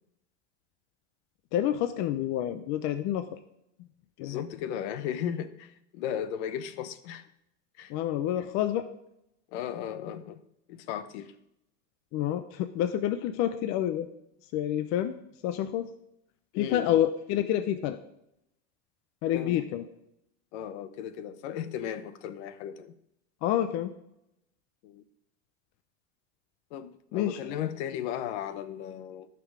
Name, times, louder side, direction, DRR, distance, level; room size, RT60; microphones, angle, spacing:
voice 1, 1.5-3.4 4.2-4.4 7.9-8.9 12.1-14.1 14.5-15.2 15.4-15.9 16.6-18.0 19.2-19.8 23.4-23.9 27.1-27.4, left 11 dB, 45° left, 0.8 m, -28 dB
voice 2, 4.2-7.3 7.8-7.9 9.5-10.4 10.7-11.3 16.5-17.0 19.3-19.6 20.5-23.0 24.8-25.0 26.7-29.3, left 9 dB, 65° left, 1.0 m, -36 dB
15.0 x 6.1 x 4.8 m
supercardioid pair, 135°, 37 cm